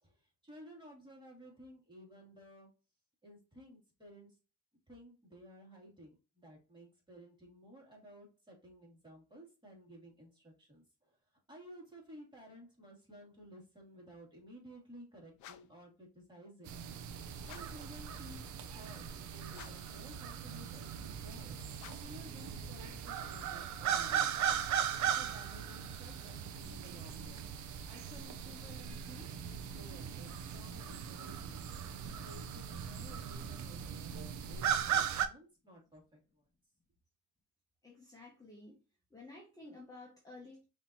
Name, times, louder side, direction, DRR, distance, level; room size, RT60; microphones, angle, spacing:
voice 1, 0.0-2.7 3.2-4.4 4.9-11.2 11.5-16.8 17.4-24.5 24.9-27.5 27.7-31.6 32.0-36.5, equal, 15° right, -2 dB, 2.6 m, -55 dB
sound 1, 15.4-15.9 17.4-17.9 19.5-20.0 21.7-22.2, left 12 dB, 75° left, 0.5 m, -54 dB
sound 2, 16.7-35.3, right 8 dB, 70° right, 0.7 m, -38 dB
voice 2, 37.8-38.8 39.1-40.6, left 2 dB, 10° left, -2 dB, 1.3 m, -52 dB
5.5 x 3.2 x 2.8 m, 0.31 s
cardioid pair, 90°, 30 cm